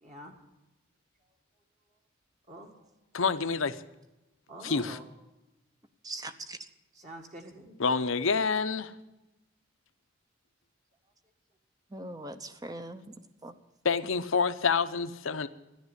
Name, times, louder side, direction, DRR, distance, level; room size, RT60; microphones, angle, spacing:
voice 1, 0.0-0.3 2.5-2.9 4.5-5.0 6.9-7.8 13.1-13.3, right 1 dB, 35° right, 1 dB, 1.7 m, -46 dB
voice 2, 3.1-3.8 4.6-5.0 7.8-8.9 13.8-15.5, left 5 dB, 75° left, 12 dB, 0.8 m, -27 dB
voice 3, 6.0-6.6 11.9-13.0 13.4-13.5, right 2 dB, 20° right, 10 dB, 0.7 m, -40 dB
13.5 x 11.0 x 8.1 m, 1.0 s
head